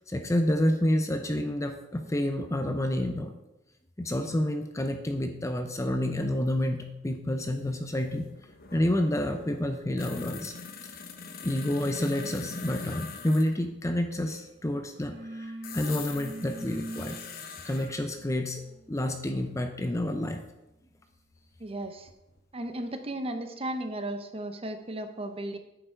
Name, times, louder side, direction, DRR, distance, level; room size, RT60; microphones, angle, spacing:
voice 1, 0.1-3.3 4.0-8.3 8.7-10.5 11.4-17.2 17.6-18.6 18.9-20.4, left 1 dB, 15° left, 6 dB, 0.6 m, -29 dB
sound 1, 7.6-7.7 7.9-13.6 15.6-17.9 20.1-20.2 21.7-22.4 22.7-22.8, left 4 dB, 50° left, 1.0 m, -42 dB
sound 2, 14.3-14.5 14.8-21.4, right 1 dB, 80° right, 1.6 m, -45 dB
voice 2, 21.6-22.1 22.5-25.6, right 1 dB, 30° right, 7 dB, 0.8 m, -35 dB
9.9 x 7.1 x 4.5 m, 0.94 s
head